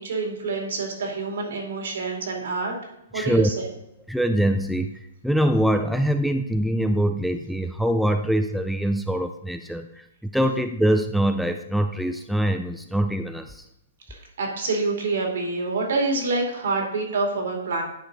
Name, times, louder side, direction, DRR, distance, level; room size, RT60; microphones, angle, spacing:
voice 1, 0.0-2.7 3.1-3.7 14.1-17.8, right 3 dB, 75° right, 0 dB, 2.5 m, -27 dB
voice 2, 3.1-3.5 4.1-13.6, right 1 dB, ahead, 7 dB, 0.4 m, -24 dB
10.5 x 4.9 x 3.9 m, 0.84 s
hypercardioid pair, 140°, 0 cm